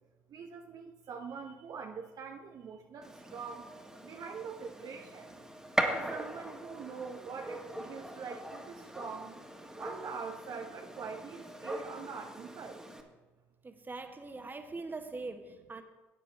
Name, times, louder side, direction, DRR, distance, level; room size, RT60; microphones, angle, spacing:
voice 1, 0.3-3.7 4.0-5.3 5.8-9.4 9.8-12.8, right 5 dB, 55° right, 3 dB, 0.8 m, -43 dB
Gunshot gunfire, 3.0-13.0, right 1 dB, 5° right, 1.6 m, -40 dB
voice 2, 13.6-15.8, right 3 dB, 25° right, 7 dB, 1.3 m, -42 dB
13.5 x 9.2 x 3.3 m, 1.2 s
hypercardioid pair, 55°, 8 cm